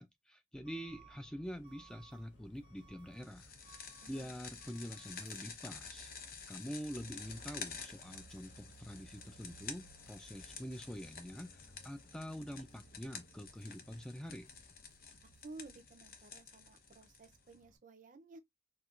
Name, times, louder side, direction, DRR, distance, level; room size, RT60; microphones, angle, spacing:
voice 1, 0.0-14.5, equal, 5° left, 0.3 m, -46 dB
Truck / Alarm, 0.5-17.8, right 1 dB, 80° left, 1.3 m, -61 dB
sound 1, 1.4-16.0, left 1 dB, 40° left, 2.4 m, -69 dB
sound 2, 3.2-17.5, left 6 dB, 55° left, 0.8 m, -51 dB
voice 2, 4.0-4.4 15.4-18.4, right 3 dB, 45° right, 0.5 m, -54 dB
4.4 x 2.2 x 2.4 m
head